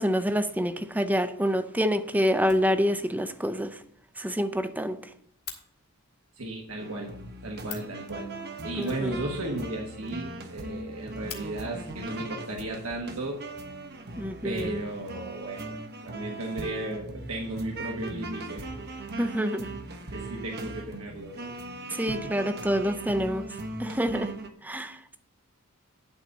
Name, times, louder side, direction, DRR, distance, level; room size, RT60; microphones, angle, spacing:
voice 1, 0.0-3.8 4.2-5.0 8.8-9.2 14.2-14.8 19.2-19.7 21.9-23.5 23.8-24.3 24.6-25.2, equal, 5° right, 9 dB, 0.6 m, -27 dB
Fire, 2.4-3.2 3.5-3.6 3.9-4.0 4.3-4.4 4.6-5.6 7.3-7.4 7.6-8.0 8.8-9.7 10.0-10.1 10.4-10.5 10.9-11.4 12.4-12.5 13.2-13.8, left 9 dB, 75° left, 2.6 m, -44 dB
voice 2, 6.4-7.1 7.4-8.3 8.6-13.4 14.4-15.7 16.0-18.9 20.1-21.5 21.9-22.3, right 1 dB, 70° right, 0 dB, 1.5 m, -35 dB
sound 1, 6.8-24.5, right 2 dB, 45° right, 1.0 m, -39 dB
11.0 x 4.1 x 7.1 m, 0.70 s
head